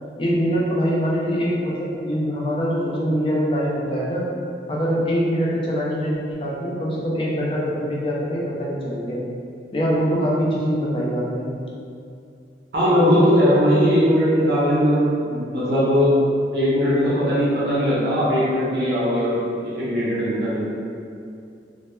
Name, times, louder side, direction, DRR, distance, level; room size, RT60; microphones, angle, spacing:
voice 1, 0.2-4.3 4.7-9.2 9.7-11.5, equal, 30° left, -5 dB, 0.3 m, -23 dB
voice 2, 12.7-16.1 16.5-20.6, equal, 60° right, -9 dB, 0.5 m, -19 dB
2.1 x 2.1 x 2.9 m, 2.4 s
head